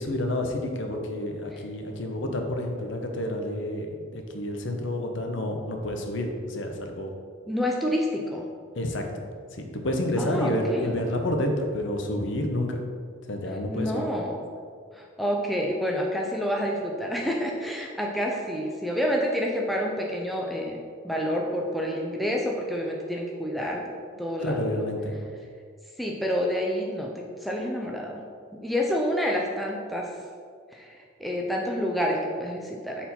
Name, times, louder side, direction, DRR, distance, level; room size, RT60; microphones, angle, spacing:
voice 1, 0.0-7.1 8.7-9.1 9.6-12.8 13.3-14.1 24.4-25.2, left 1 dB, 60° left, 3 dB, 0.7 m, -29 dB
voice 2, 7.5-8.5 10.2-11.2 13.7-14.4 14.9-20.8 21.0-23.8 24.2-24.9 26.0-28.2 28.5-30.1 30.7-33.1, equal, ahead, -1 dB, 0.4 m, -28 dB
4.3 x 4.3 x 5.4 m, 2.1 s
head